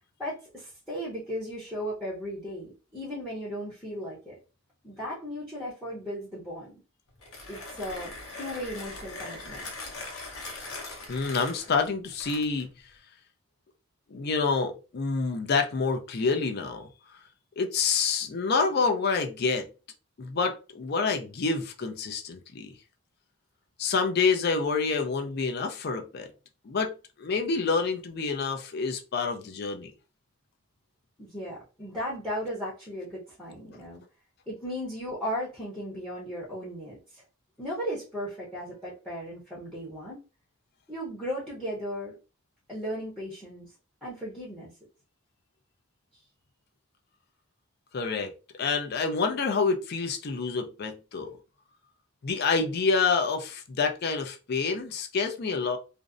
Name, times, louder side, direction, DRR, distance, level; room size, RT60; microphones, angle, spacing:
voice 1, 0.2-4.4 4.8-6.8 7.5-9.7 31.2-34.0 34.5-37.2 37.6-40.2 40.9-42.1 42.7-43.7 44.0-44.7, equal, ahead, 0.7 m, -36 dB
Mechanisms, 7.1-12.7, left 2 dB, 85° left, 0.8 m, -41 dB
voice 2, 11.1-12.7 14.1-16.9 17.6-19.6 20.2-22.7 23.8-26.3 26.6-26.9 27.2-29.9 47.9-51.4 52.2-55.8, left 4 dB, 50° left, 0.4 m, -27 dB
2.5 x 2.0 x 2.4 m
head